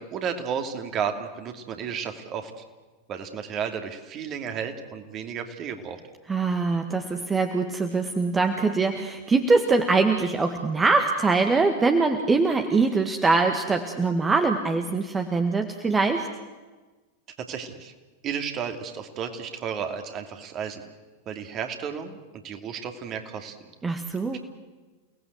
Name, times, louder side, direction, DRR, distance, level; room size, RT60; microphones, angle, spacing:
voice 1, 0.0-2.6 3.1-6.0 17.4-17.9 18.2-20.8 21.3-23.6 24.3-24.4, right 7 dB, 35° right, 6 dB, 2.7 m, -33 dB
voice 2, 6.3-16.3 23.8-24.4, right 3 dB, 15° right, 5 dB, 1.7 m, -23 dB
29.5 x 19.0 x 8.1 m, 1.3 s
figure-of-eight pair, 90°, 0 cm